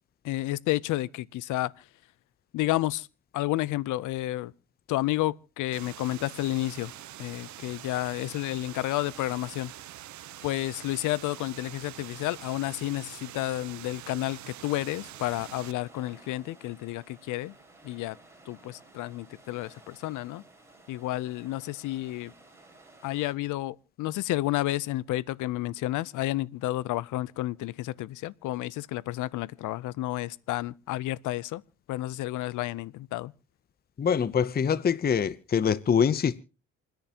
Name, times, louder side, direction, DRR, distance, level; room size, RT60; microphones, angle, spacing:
voice 1, 0.2-1.8 2.5-3.1 3.3-4.5 4.9-6.9 7.2-9.7 10.4-17.5 17.8-18.2 18.5-20.4 20.9-22.3 23.0-31.6 31.9-33.3, left 16 dB, 85° left, 0.6 m, -31 dB
sound 1, 5.7-15.7, right 13 dB, 70° right, 0.8 m, -45 dB
sound 2, 14.9-23.3, right 2 dB, 10° right, 4.6 m, -55 dB
voice 2, 34.0-36.4, left 7 dB, 30° left, 0.6 m, -24 dB
28.0 x 10.5 x 2.9 m
cardioid pair, 90°, 30 cm